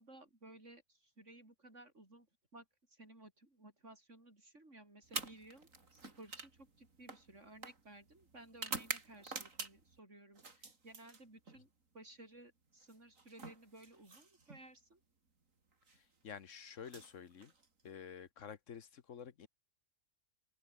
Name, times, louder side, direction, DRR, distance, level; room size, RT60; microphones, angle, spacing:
voice 1, 0.0-2.3 2.5-10.4 10.8-11.7 11.9-15.0, right 2 dB, 65° right, 7.2 m, -57 dB
sound 1, 5.0-10.0 10.4-11.6 12.8-14.6 15.7-16.0 16.8-17.9, right 3 dB, 85° right, 3.5 m, -47 dB
voice 2, 15.9-17.5 17.8-19.5, left 7 dB, 70° left, 1.5 m, -50 dB
omnidirectional pair, 1.3 m